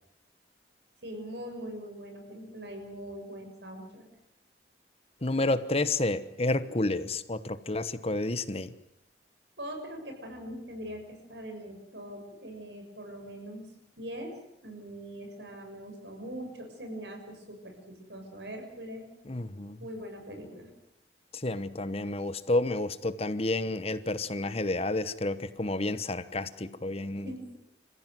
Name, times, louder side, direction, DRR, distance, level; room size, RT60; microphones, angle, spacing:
voice 1, 1.0-4.0 9.6-13.7 14.0-19.1 19.8-20.7 27.1-27.6, equal, 75° right, 4 dB, 6.8 m, -42 dB
voice 2, 5.2-8.7 19.3-19.8 21.3-27.3, left 2 dB, 35° left, 13 dB, 1.1 m, -30 dB
28.0 x 15.5 x 9.4 m, 0.82 s
head